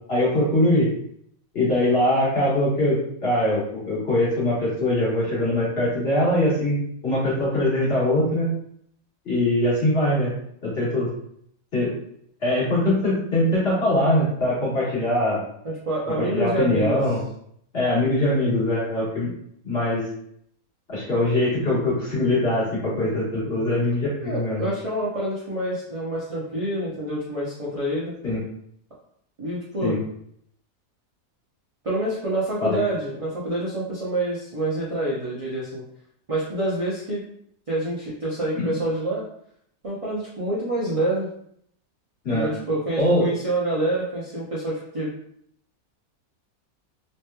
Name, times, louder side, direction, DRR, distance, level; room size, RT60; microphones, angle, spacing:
voice 1, 0.1-0.9 1.5-6.7 7.0-8.5 9.2-10.3 10.6-11.1 11.7-11.9 12.4-15.4 16.2-17.2 17.7-19.3 19.6-20.1 20.9-24.7 28.2-28.4 29.8-30.0 32.6-32.8 38.6-38.7 42.2-42.5 43.0-43.3, left 1 dB, 45° left, -8 dB, 1.5 m, -22 dB
voice 2, 15.6-17.0 23.4-23.7 24.2-28.1 29.4-30.0 31.8-35.8 36.3-37.2 37.7-39.2 39.8-41.3 42.3-45.1, right 1 dB, 40° right, -6 dB, 0.4 m, -27 dB
3.1 x 2.9 x 2.2 m, 0.69 s
omnidirectional pair, 1.5 m